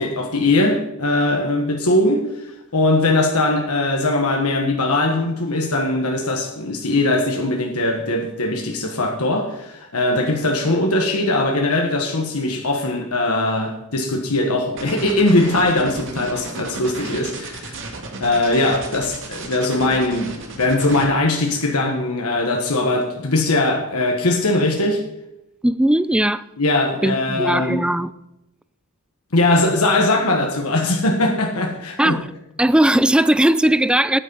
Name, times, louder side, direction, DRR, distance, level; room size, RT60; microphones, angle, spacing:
voice 1, 0.0-17.8 18.2-25.0 26.6-27.8 29.3-32.2, left 2 dB, 75° left, 1.4 m, -20 dB
sound 1, 14.8-21.1, right 3 dB, 55° right, 2.1 m, -33 dB
voice 2, 25.6-26.4 27.0-28.1 32.0-32.3 32.6-34.2, right 1 dB, 5° right, 0.3 m, -18 dB
9.5 x 9.2 x 5.6 m
head